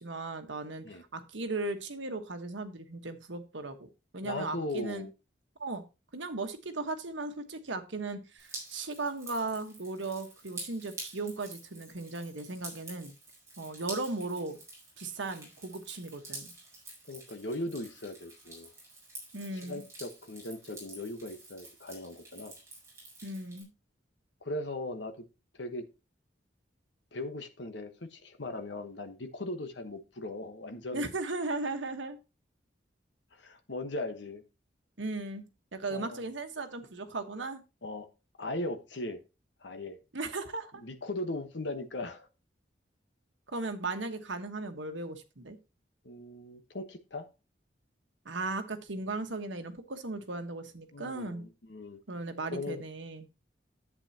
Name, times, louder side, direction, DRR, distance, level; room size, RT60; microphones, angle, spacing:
voice 1, 0.0-0.9 1.1-5.1 5.6-5.8 6.1-13.1 13.6-14.6 15.0-16.5 19.3-19.8 23.2-23.7 30.9-32.2 35.0-35.4 35.7-37.6 40.1-40.8 43.5-45.6 48.2-51.4 52.1-53.3, right 3 dB, 85° right, 1.3 m, -37 dB
voice 2, 4.2-5.1 17.1-18.7 19.6-22.5 24.4-25.1 25.5-25.9 27.1-31.1 33.3-34.4 35.9-36.2 37.8-38.1 38.4-39.2 39.6-40.0 40.8-42.3 46.0-47.3 50.9-52.0 52.5-52.8, left 2 dB, 75° left, 1.3 m, -38 dB
Drip, 8.4-23.6, right 2 dB, 15° right, 4.7 m, -48 dB
11.0 x 8.3 x 2.9 m
head